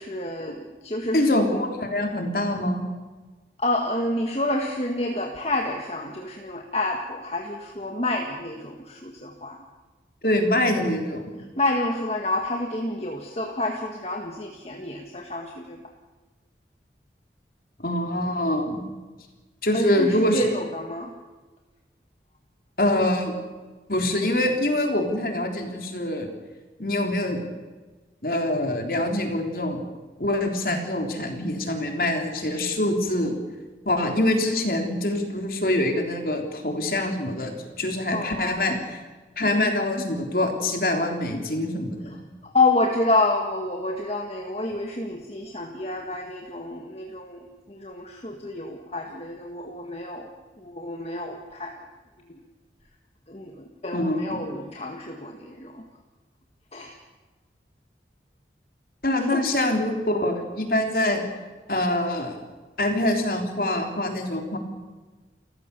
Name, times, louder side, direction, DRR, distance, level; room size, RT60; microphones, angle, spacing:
voice 1, 0.0-1.5 3.6-9.6 11.6-15.8 19.7-21.1 38.1-38.8 39.4-40.0 42.1-42.2 42.4-50.3 50.6-51.8 53.3-55.8 56.7-57.0 59.1-59.5, left 2 dB, 35° left, 2 dB, 1.8 m, -28 dB
voice 2, 1.1-2.9 10.2-11.4 17.8-18.8 19.6-20.5 22.8-23.4 23.9-26.3 26.8-27.4 28.2-29.8 30.2-33.3 33.9-38.8 39.4-42.2 53.9-54.4 59.0-61.2 61.7-62.4 62.8-64.6, left 1 dB, 55° left, 3 dB, 3.6 m, -24 dB
29.5 x 15.0 x 6.9 m, 1.3 s
head